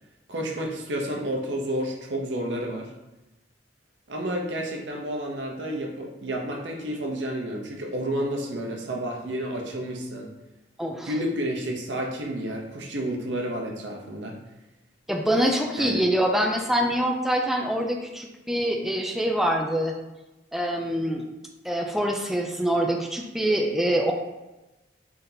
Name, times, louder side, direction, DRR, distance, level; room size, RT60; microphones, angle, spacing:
voice 1, 0.3-2.9 4.1-10.3 11.1-14.4 15.8-16.0, right 1 dB, 85° right, 1 dB, 0.7 m, -30 dB
voice 2, 10.8-11.1 15.1-20.0 20.5-21.2 21.6-24.1, equal, ahead, 1 dB, 0.3 m, -25 dB
3.4 x 2.7 x 3.8 m, 1.0 s
head